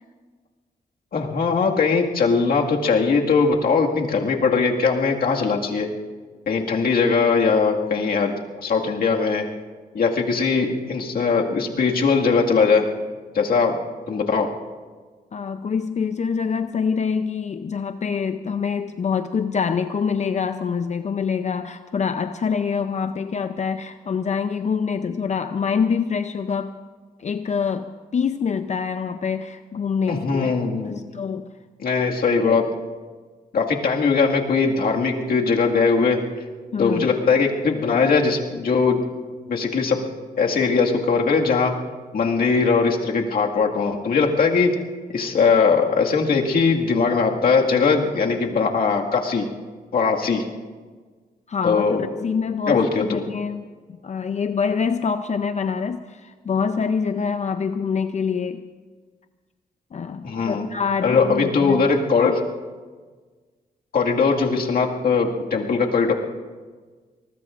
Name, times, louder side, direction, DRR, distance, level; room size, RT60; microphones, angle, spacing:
voice 1, 1.1-5.9 6.5-9.4 9.9-12.9 13.3-13.7 14.1-14.5 30.1-31.0 31.8-32.6 33.5-36.2 36.8-39.0 39.5-40.0 40.4-41.7 42.1-44.7 45.1-49.5 49.9-50.4 51.6-52.0 52.7-53.2 60.2-60.7 61.0-62.4 63.9-66.1, left 5 dB, 70° left, 0 dB, 2.0 m, -20 dB
voice 2, 15.3-26.7 27.2-30.5 30.9-31.5 36.7-37.1 51.5-53.7 54.0-58.6 59.9-61.9, left 6 dB, 45° left, 9 dB, 0.6 m, -25 dB
24.5 x 20.5 x 2.5 m, 1.4 s
cardioid pair, 80°, 16 cm